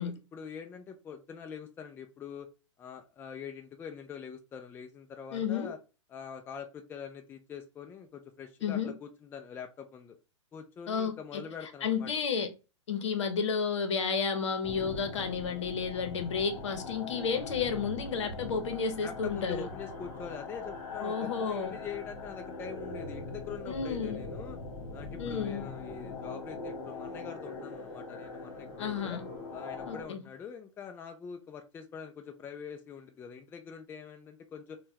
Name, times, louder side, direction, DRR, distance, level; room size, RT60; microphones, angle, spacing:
voice 1, 0.0-2.5 2.8-5.8 6.1-10.2 10.5-12.1 19.0-24.6 24.9-29.2 29.5-34.8, left 7 dB, 15° left, 0.4 m, -44 dB
voice 2, 5.3-5.7 8.6-8.9 10.9-11.4 11.8-12.5 12.9-19.7 21.0-21.7 23.7-24.2 25.2-25.6 28.8-29.3 29.9-30.3, left 6 dB, 65° left, 0.9 m, -32 dB
sound 1, 14.6-30.0, left 3 dB, 50° left, 1.4 m, -41 dB
4.2 x 2.2 x 2.8 m
hypercardioid pair, 120°, 16 cm